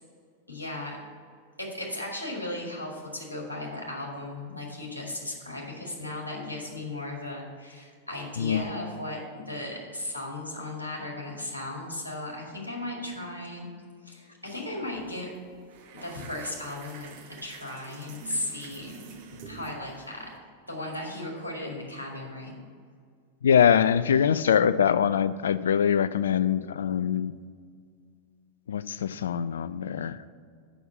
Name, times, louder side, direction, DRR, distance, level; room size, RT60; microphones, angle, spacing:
voice 1, 0.5-1.0 1.6-13.7 14.0-15.3 15.9-17.1 17.4-19.0 19.3-20.3 20.7-22.6, left 1 dB, 80° left, -2 dB, 2.1 m, -36 dB
sound 1, 14.9-15.1 15.3-20.4, right 5 dB, 50° right, 1.0 m, -47 dB
voice 2, 23.4-27.3 28.7-30.3, left 8 dB, 65° left, 14 dB, 0.3 m, -23 dB
7.0 x 6.1 x 7.2 m, 2.1 s
figure-of-eight pair, 90°, 0 cm